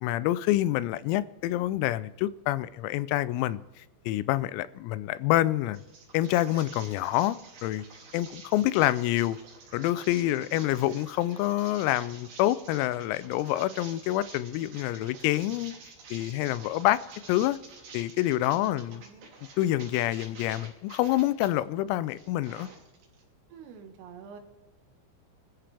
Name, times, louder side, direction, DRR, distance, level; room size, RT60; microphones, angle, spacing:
voice 1, 0.0-5.8 6.1-7.4 7.6-7.8 8.1-9.4 9.7-15.7 16.1-17.0 17.3-17.6 17.9-19.0 19.6-22.7, left 15 dB, 90° left, 3.4 m, -27 dB
sound 1, 5.7-21.5 21.9-23.2, right 4 dB, 50° right, 4.5 m, -49 dB
voice 2, 10.2-10.8 18.5-19.3 23.5-24.4, right 6 dB, 75° right, 4.1 m, -49 dB
26.0 x 14.0 x 3.4 m
omnidirectional pair, 6.0 m